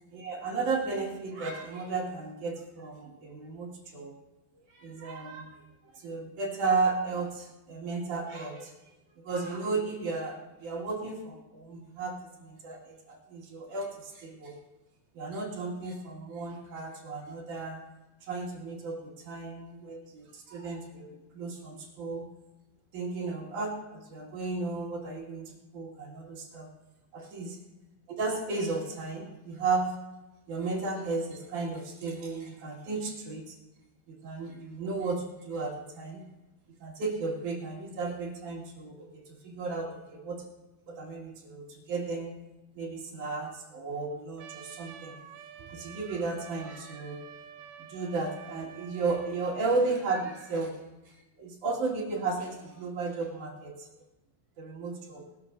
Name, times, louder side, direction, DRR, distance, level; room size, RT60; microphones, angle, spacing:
voice 1, 0.1-4.2 4.7-5.6 5.9-8.9 9.2-14.5 15.1-17.8 18.2-22.3 22.9-26.7 27.1-27.5 28.1-30.0 30.5-33.6 34.1-36.2 36.8-40.4 40.9-42.3 42.8-45.2 45.7-47.2 47.8-50.8 51.1-53.9 54.6-55.2, right 3 dB, 55° right, -2 dB, 3.0 m, -34 dB
Trumpet, 44.4-49.7, right 8 dB, 80° right, 2.3 m, -49 dB
20.5 x 13.5 x 2.6 m, 1.0 s
omnidirectional pair, 4.9 m